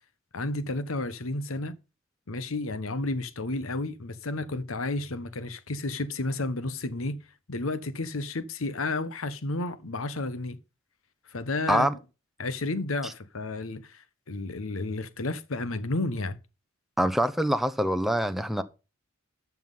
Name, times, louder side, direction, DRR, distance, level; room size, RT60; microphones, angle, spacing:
voice 1, 0.3-1.8 2.3-7.2 7.5-10.6 11.3-11.9 12.4-16.4, left 2 dB, 80° left, 1.0 m, -32 dB
voice 2, 17.0-18.6, equal, ahead, 0.7 m, -25 dB
12.5 x 6.0 x 5.4 m
head